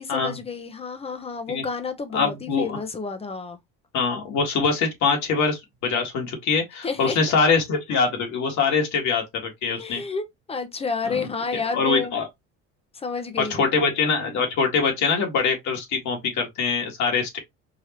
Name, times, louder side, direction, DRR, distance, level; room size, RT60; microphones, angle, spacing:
voice 1, 0.0-3.6 6.8-7.2 9.7-12.1 12.9-13.7, left 4 dB, 20° left, 0.8 m, -30 dB
voice 2, 2.1-2.8 3.9-10.0 11.0-11.2 11.5-12.3 13.4-17.4, left 5 dB, 60° left, 2.0 m, -23 dB
4.9 x 2.7 x 2.9 m
cardioid pair, 115°, 32 cm